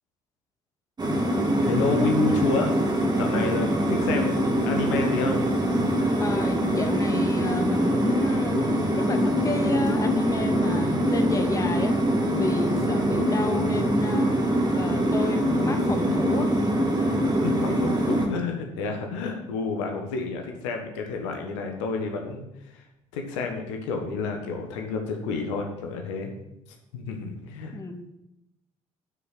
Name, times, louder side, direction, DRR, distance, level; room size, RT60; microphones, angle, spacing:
sound 1, 1.0-18.3, right 1 dB, 25° right, 2.0 m, -24 dB
voice 1, 1.6-2.7 3.2-5.4 17.4-22.8 23.1-26.3 26.9-27.7, left 4 dB, 70° left, 3 dB, 1.4 m, -30 dB
voice 2, 6.2-8.7 9.0-12.0 12.3-14.3 14.7-16.5 17.6-17.8 27.7-28.1, left 3 dB, 20° left, 7 dB, 1.0 m, -30 dB
7.6 x 6.7 x 7.2 m, 0.89 s
figure-of-eight pair, 50°, 16 cm